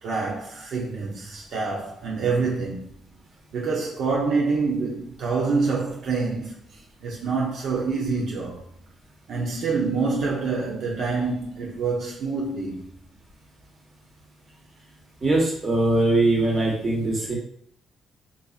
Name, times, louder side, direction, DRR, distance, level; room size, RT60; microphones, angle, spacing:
voice 1, 0.0-2.9 3.5-8.6 9.3-12.9, right 4 dB, 70° right, 0.7 m, -26 dB
voice 2, 15.2-17.4, right 2 dB, 35° right, 1.3 m, -21 dB
4.0 x 2.5 x 2.4 m
cardioid pair, 90°, 0 cm